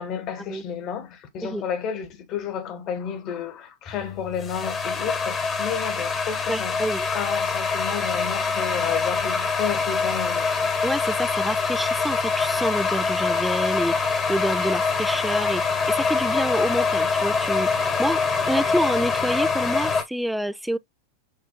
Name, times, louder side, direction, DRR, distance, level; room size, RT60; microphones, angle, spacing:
voice 1, 0.0-10.7, left 8 dB, 40° left, 1.3 m, -32 dB
sound 1, 3.9-20.0, left 4 dB, 20° left, 1.2 m, -24 dB
voice 2, 6.5-7.1 10.8-20.8, right 1 dB, ahead, 0.4 m, -28 dB
6.7 x 2.6 x 2.2 m
figure-of-eight pair, 90°, 0 cm